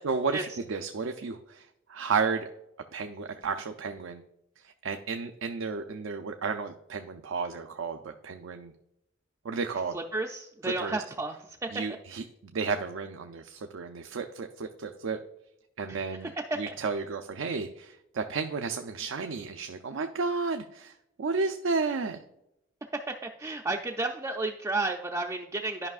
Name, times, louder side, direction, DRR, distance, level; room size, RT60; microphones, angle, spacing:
voice 1, 0.0-2.5 2.9-4.2 4.6-8.7 9.4-10.0 10.6-11.0 11.7-15.2 15.8-16.3 16.6-22.2, right 4 dB, 90° right, 6 dB, 0.5 m, -32 dB
voice 2, 9.9-11.4 11.6-11.7 15.9-16.0 16.5-16.7 23.1-25.9, right 2 dB, 15° right, 1 dB, 0.3 m, -32 dB
12.0 x 5.5 x 2.4 m, 0.83 s
head